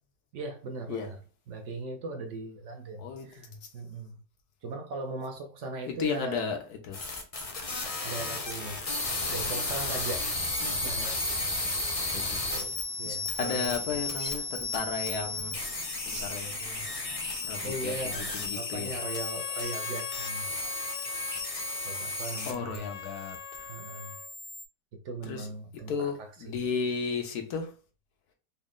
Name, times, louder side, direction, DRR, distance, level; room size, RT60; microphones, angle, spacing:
voice 1, 0.3-1.2 1.5-4.2 4.6-6.4 7.8-8.8 9.2-10.5 10.8-11.5 12.5-13.7 17.6-20.7 21.8-23.1 23.7-24.2 24.9-26.5, right 2 dB, 65° right, 0.8 m, -39 dB
voice 2, 3.0-3.7 5.9-7.1 10.6-10.8 12.1-12.4 13.0-15.6 16.0-19.0 20.5-20.6 22.4-23.7 25.2-25.5 25.7-27.8, left 5 dB, 90° left, 1.3 m, -35 dB
sound 1, 6.9-22.8 23.1-24.6, left 2 dB, 45° left, 0.4 m, -34 dB
sound 2, 12.4-18.5, right 3 dB, 90° right, 1.4 m, -49 dB
Trumpet, 18.8-24.3, left 7 dB, 70° left, 0.9 m, -45 dB
4.1 x 2.0 x 3.7 m
omnidirectional pair, 1.6 m